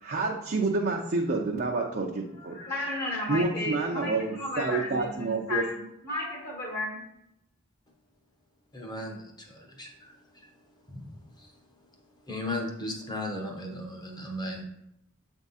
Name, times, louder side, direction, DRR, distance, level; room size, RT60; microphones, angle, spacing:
voice 1, 0.0-2.6 3.3-5.7, right 3 dB, 45° right, -1 dB, 0.6 m, -28 dB
voice 2, 2.4-7.0, left 1 dB, 40° left, -5 dB, 1.6 m, -34 dB
voice 3, 8.7-10.5 10.9-11.1 11.4-11.5 12.3-14.6, left 1 dB, 20° left, 1 dB, 1.0 m, -36 dB
8.0 x 3.6 x 4.1 m, 0.81 s
head